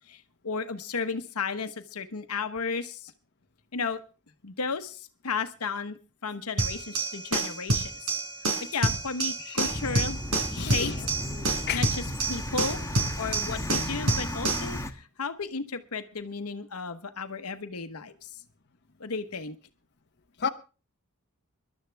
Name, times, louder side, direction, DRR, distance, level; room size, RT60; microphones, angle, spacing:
voice 1, 0.1-3.1 3.7-4.0 4.4-8.2 8.7-10.2 10.5-10.9 11.4-12.8 13.2-18.3 19.0-19.6, left 4 dB, 85° left, 1.1 m, -34 dB
sound 1, 6.6-14.7, right 2 dB, 75° right, 4.1 m, -28 dB
sound 2, 9.6-14.9, left 1 dB, 15° left, 1.2 m, -35 dB
voice 2, 10.6-11.0 11.7-11.9 20.4-20.5, left 6 dB, 50° left, 1.0 m, -31 dB
21.0 x 12.0 x 3.4 m
head